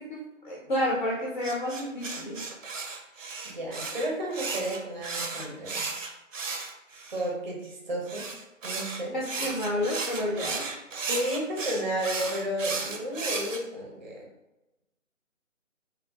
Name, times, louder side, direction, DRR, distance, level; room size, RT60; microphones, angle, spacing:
voice 1, 0.1-2.4 9.1-10.7, left 1 dB, 40° left, -5 dB, 0.6 m, -30 dB
sound 1, 1.4-7.3 8.1-13.6, right 4 dB, 75° right, 0.6 m, -34 dB
voice 2, 3.4-5.9 7.1-8.3 8.6-9.5 11.1-14.3, equal, 35° right, -1 dB, 0.6 m, -32 dB
3.4 x 2.4 x 2.3 m, 0.98 s
figure-of-eight pair, 150°, 39 cm